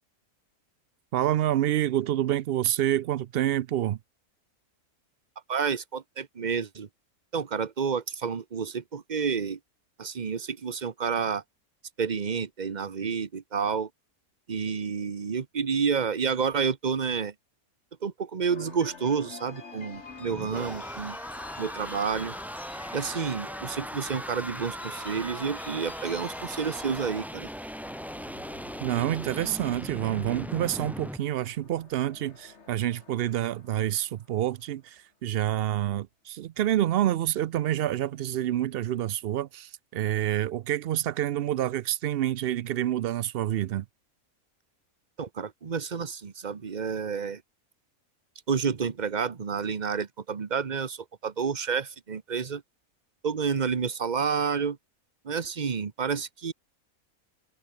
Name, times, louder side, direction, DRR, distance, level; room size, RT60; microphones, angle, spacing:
voice 1, 1.1-4.0 28.8-43.9, right 12 dB, 80° right, 0.5 m, -28 dB
voice 2, 5.5-6.9 7.3-9.6 10.0-11.4 12.0-13.9 14.5-17.3 18.0-21.2 21.6-22.3 22.9-27.5 45.2-47.4 48.5-52.6 53.2-54.8 55.2-56.5, right 6 dB, 35° right, 1.0 m, -30 dB
sound 1, 18.5-34.7, left 4 dB, 50° left, 2.3 m, -49 dB
sound 2, 19.9-31.2, equal, ahead, 3.2 m, -39 dB
omnidirectional pair, 1.6 m